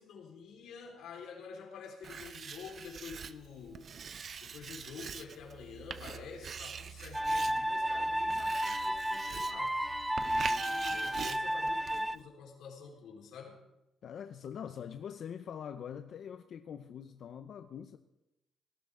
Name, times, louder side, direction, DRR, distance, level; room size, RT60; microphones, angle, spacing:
voice 1, 0.0-3.9 4.4-9.8 10.2-13.6, left 6 dB, 90° left, 4.2 m, -48 dB
Writing, 2.0-12.2, right 6 dB, 40° right, 0.7 m, -44 dB
sound 1, 7.1-12.2, right 1 dB, 5° right, 0.4 m, -32 dB
voice 2, 14.0-18.0, left 8 dB, 55° left, 0.6 m, -43 dB
19.0 x 17.0 x 3.7 m
cardioid pair, 150°, 0 cm